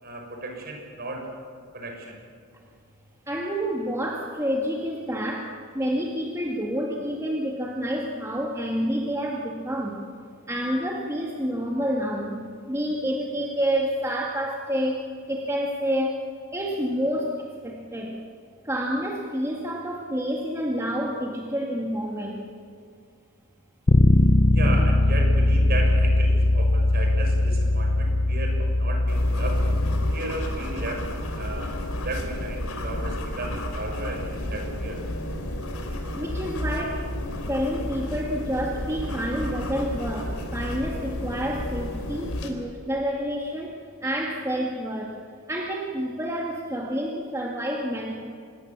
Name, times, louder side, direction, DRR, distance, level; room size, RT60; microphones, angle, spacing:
voice 1, 0.0-1.3 1.7-2.2 24.5-29.6 30.1-31.0 31.4-31.7 32.0-35.0, right 2 dB, 45° right, 2 dB, 6.2 m, -34 dB
voice 2, 3.3-10.0 10.5-16.2 16.5-18.2 18.6-22.4 24.6-24.8 36.2-37.1 37.5-45.1 45.5-48.3, equal, 15° right, -1 dB, 2.0 m, -28 dB
Bass guitar, 23.9-30.1, left 1 dB, 35° left, 0.7 m, -20 dB
sound 1, 29.1-42.5, left 1 dB, 80° left, 3.7 m, -32 dB
26.0 x 21.0 x 7.4 m, 2.3 s
head